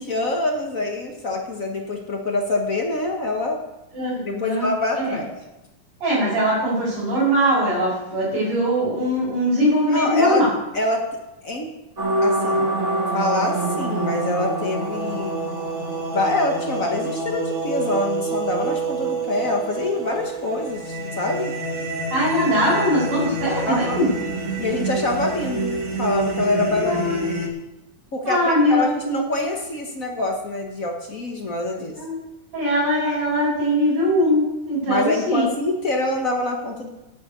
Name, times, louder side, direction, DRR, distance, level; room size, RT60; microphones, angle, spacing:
voice 1, 0.0-3.6 4.3-5.3 9.9-10.4 10.7-11.0 11.4-11.7 12.2-12.7 13.1-15.3 16.1-21.5 23.7-24.0 24.6-27.1 28.1-32.0 34.9-36.9, left 2 dB, 45° left, 1 dB, 1.1 m, -25 dB
voice 2, 3.9-4.7 4.9-5.2 6.0-10.5 22.1-24.1 26.7-27.5 28.3-29.2 31.9-32.2 32.5-35.5, equal, 80° right, -9 dB, 6.4 m, -21 dB
sound 1, 12.0-27.5, right 2 dB, 35° right, 1.2 m, -26 dB
10.5 x 8.4 x 8.3 m, 0.96 s
omnidirectional pair, 3.6 m